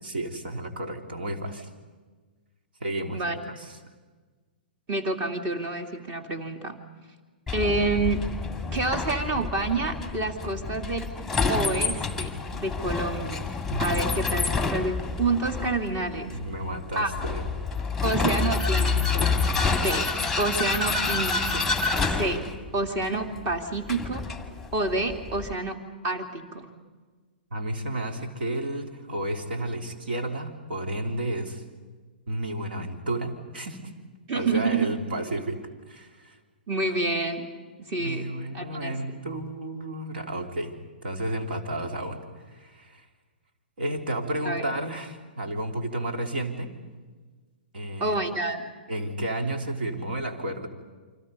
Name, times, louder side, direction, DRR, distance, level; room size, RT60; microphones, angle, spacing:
voice 1, 0.0-1.7 2.8-3.8 13.7-14.1 16.3-17.4 27.5-31.6 32.3-33.9 34.3-35.6 35.9-36.4 38.0-40.7 41.0-42.2 42.5-43.0 43.8-46.7 47.7-48.2 48.9-50.7, right 1 dB, 70° right, 4 dB, 3.2 m, -32 dB
voice 2, 4.9-6.8 7.5-8.2 8.7-11.1 11.5-13.5 13.8-16.4 17.0-17.1 18.0-19.3 19.7-20.1 20.4-21.7 22.0-22.4 22.7-24.2 24.7-25.8 26.0-26.7 34.3-34.9 36.7-37.5 37.8-38.3 38.5-39.0 44.4-44.6 48.0-48.7, right 3 dB, 30° right, 6 dB, 2.7 m, -28 dB
Vehicle, 7.5-25.5, left 4 dB, ahead, 2.0 m, -28 dB
28.5 x 25.5 x 5.5 m, 1.4 s
figure-of-eight pair, 115°, 5 cm